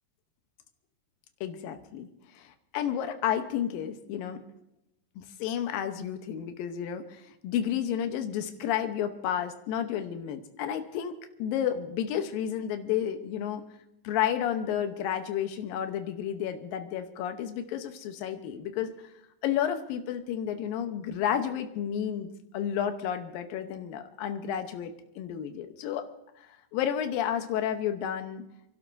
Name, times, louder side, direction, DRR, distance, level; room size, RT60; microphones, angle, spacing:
voice 1, 1.4-2.1 2.3-4.4 5.2-13.6 14.0-18.9 19.4-26.1 26.4-26.5 26.7-28.4, left 9 dB, 85° left, 7 dB, 2.7 m, -31 dB
29.5 x 12.0 x 2.7 m, 0.84 s
omnidirectional pair, 4.0 m